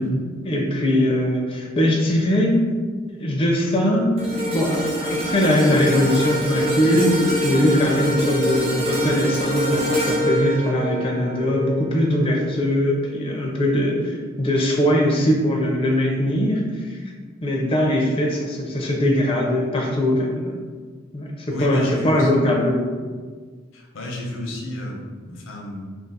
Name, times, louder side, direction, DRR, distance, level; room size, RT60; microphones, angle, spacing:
voice 1, 0.0-2.6 3.1-17.0 17.4-20.6 21.1-22.8, left 1 dB, 30° left, -1 dB, 0.4 m, -21 dB
sound 1, 4.2-12.5 13.0-13.2, equal, 30° right, 0.7 m, -25 dB
voice 2, 21.5-22.3 23.7-25.9, left 1 dB, 85° left, 0 dB, 0.6 m, -31 dB
2.4 x 2.4 x 3.9 m, 1.5 s
head